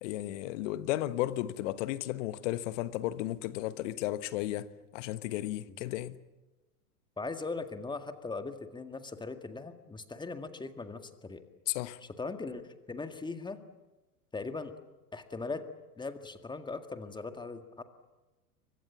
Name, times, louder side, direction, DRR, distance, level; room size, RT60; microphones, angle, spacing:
voice 1, 0.0-4.7 4.9-6.2 11.7-12.0, left 15 dB, 50° left, 14 dB, 1.3 m, -34 dB
voice 2, 7.2-11.4 12.2-13.6 14.3-14.7 15.1-15.7 16.0-17.8, left 3 dB, 10° left, 8 dB, 1.9 m, -39 dB
29.5 x 24.0 x 7.3 m, 1.1 s
figure-of-eight pair, 95°, 46 cm